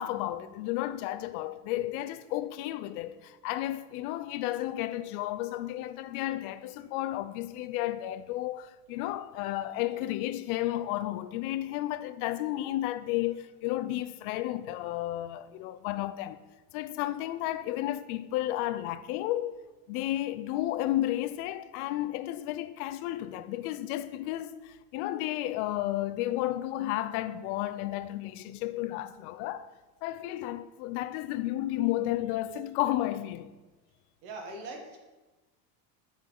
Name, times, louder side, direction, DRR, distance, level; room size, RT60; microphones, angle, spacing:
voice 1, 0.0-16.4 16.7-19.6 19.9-29.7 30.0-33.5, left 14 dB, 70° left, 0.5 m, -32 dB
voice 2, 34.2-35.0, right 2 dB, 80° right, 1.7 m, -41 dB
8.3 x 4.7 x 3.8 m
cardioid pair, 170°, 46 cm